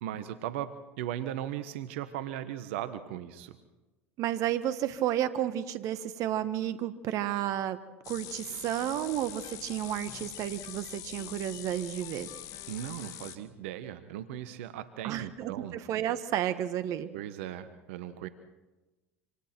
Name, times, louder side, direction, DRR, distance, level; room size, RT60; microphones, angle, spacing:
voice 1, 0.0-3.6 12.7-15.8 17.1-18.3, right 11 dB, 70° right, 12 dB, 1.3 m, -38 dB
voice 2, 4.2-7.8 8.1-12.3 15.0-17.1, right 11 dB, 50° right, 12 dB, 1.3 m, -32 dB
sound 1, 8.0-13.4, left 11 dB, 55° left, 1.8 m, -43 dB
27.0 x 27.0 x 4.5 m, 1.1 s
hypercardioid pair, 80°, 7 cm